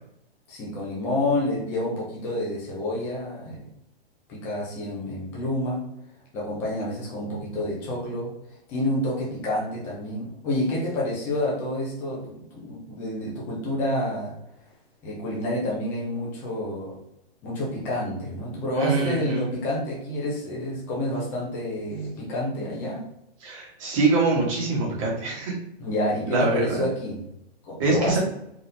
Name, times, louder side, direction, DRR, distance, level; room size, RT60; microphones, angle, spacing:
voice 1, 0.5-3.6 4.3-5.9 6.3-8.3 8.7-14.4 15.0-17.0 17.4-23.1 25.8-27.3 27.6-28.2, left 1 dB, 5° left, -5 dB, 0.4 m, -29 dB
voice 2, 18.8-19.4 23.4-25.5 26.3-26.8 27.8-28.2, right 3 dB, 30° right, -2 dB, 1.2 m, -24 dB
3.9 x 3.4 x 2.7 m, 0.80 s
hypercardioid pair, 165°, 31 cm